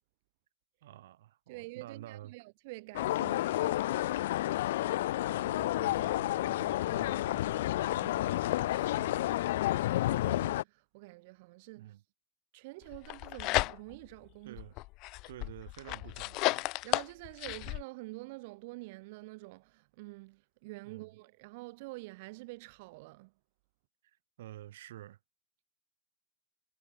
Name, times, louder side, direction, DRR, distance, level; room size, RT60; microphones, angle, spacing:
voice 1, 0.8-2.4 5.1-7.6 8.9-9.6 11.8-12.0 14.4-14.8 15.3-16.7 20.8-21.1 24.0-25.2, right 14 dB, 90° right, 7.6 m, -50 dB
voice 2, 1.5-3.9 7.9-9.1 9.5-11.9 12.5-14.6 16.8-23.3, right 24 dB, 60° right, 2.3 m, -48 dB
sound 1, 2.9-10.6, left 15 dB, 80° left, 0.7 m, -30 dB
sound 2, 12.9-14.1 14.6-17.8, left 22 dB, 45° left, 1.5 m, -33 dB
supercardioid pair, 155°, 0 cm